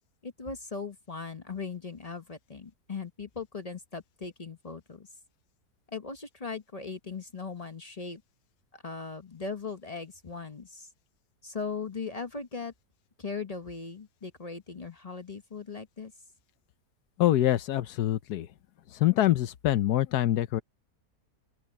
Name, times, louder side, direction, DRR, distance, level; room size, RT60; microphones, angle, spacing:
voice 1, 0.2-5.1 5.9-8.2 8.7-10.9 11.4-12.7 13.2-16.1, left 4 dB, 30° left, 0.8 m, -39 dB
voice 2, 17.2-18.5 18.9-20.6, left 13 dB, 85° left, 1.3 m, -25 dB
open air
omnidirectional pair, 1.7 m